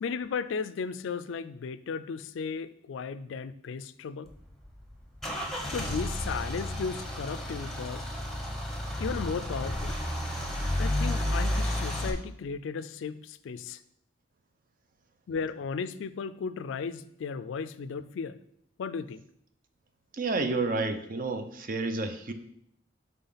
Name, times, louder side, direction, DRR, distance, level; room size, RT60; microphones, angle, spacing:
voice 1, 0.0-4.3 5.7-8.0 9.0-10.0 10.8-13.8 15.3-18.4 18.8-19.2, left 5 dB, 80° left, 14 dB, 0.3 m, -35 dB
Car / Engine starting / Idling, 4.3-12.1, left 1 dB, ahead, 0.9 m, -32 dB
voice 2, 20.2-22.3, right 3 dB, 45° right, 8 dB, 0.6 m, -30 dB
5.7 x 3.7 x 5.5 m, 0.72 s
head